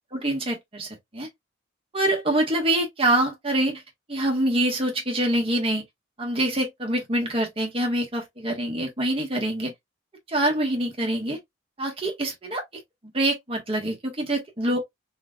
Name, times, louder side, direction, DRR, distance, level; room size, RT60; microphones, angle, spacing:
voice 1, 0.1-1.3 1.9-3.8 4.1-5.8 6.2-9.7 10.3-11.4 11.8-12.6 13.1-14.8, right 1 dB, 30° right, 1.5 m, -25 dB
3.9 x 3.2 x 2.3 m
head